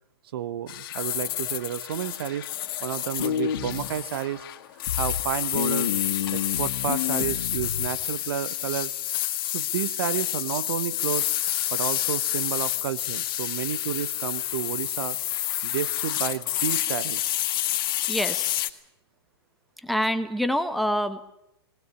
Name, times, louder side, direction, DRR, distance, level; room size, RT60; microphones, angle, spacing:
voice 1, 0.3-2.5 2.8-4.4 4.9-5.9 6.3-9.0 9.5-11.3 11.7-15.2 15.6-17.3, right 10 dB, 65° right, 15 dB, 1.2 m, -31 dB
sound 1, 0.7-18.7, left 13 dB, 55° left, 1.8 m, -29 dB
sound 2, 3.2-3.9 4.9-5.2 5.5-7.9, left 9 dB, 70° left, 2.1 m, -29 dB
voice 2, 18.1-18.5 19.8-21.2, equal, ahead, 11 dB, 1.4 m, -26 dB
21.0 x 19.0 x 10.0 m, 0.83 s
hypercardioid pair, 135°, 14 cm